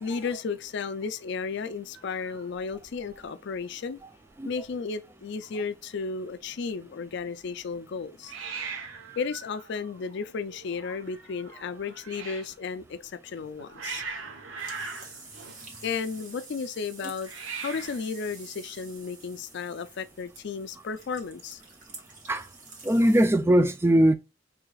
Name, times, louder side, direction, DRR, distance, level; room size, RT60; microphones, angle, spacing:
voice 1, 0.0-4.0 4.4-8.3 9.2-14.0 15.8-17.3 17.6-21.6, left 5 dB, 60° left, 0.4 m, -34 dB
Hiss, 1.9-3.3 3.6-4.0 4.3-4.4 4.6-5.2 8.2-12.5 13.3-16.2 17.2-18.1, right 5 dB, 75° right, 0.9 m, -41 dB
sound 1, 14.6-23.3, right 3 dB, 45° right, 1.4 m, -48 dB
voice 2, 22.8-24.2, right 1 dB, 10° right, 0.4 m, -20 dB
4.8 x 3.4 x 2.3 m
head